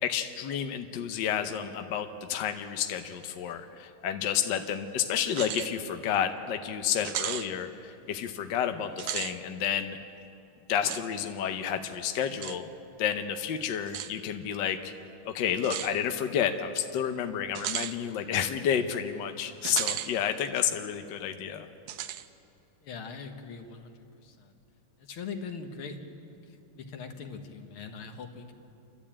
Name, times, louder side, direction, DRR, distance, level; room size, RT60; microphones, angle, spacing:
voice 1, 0.0-10.0 10.7-12.7 13.0-14.9 15.2-21.7, left 9 dB, 65° left, 7 dB, 1.4 m, -30 dB
sound 1, 5.3-5.7 6.1-6.2 7.0-7.5 8.9-9.3 10.9-11.0 12.4-12.6 13.9-14.1 15.6-15.9 17.5-17.9 19.6-20.1 20.5-20.6 21.9-22.2, right 11 dB, 70° right, 1.4 m, -34 dB
voice 2, 22.8-24.5 25.0-26.0 26.3-28.5, left 5 dB, 80° left, 5 dB, 2.2 m, -42 dB
29.0 x 12.5 x 8.7 m, 2.7 s
omnidirectional pair, 2.4 m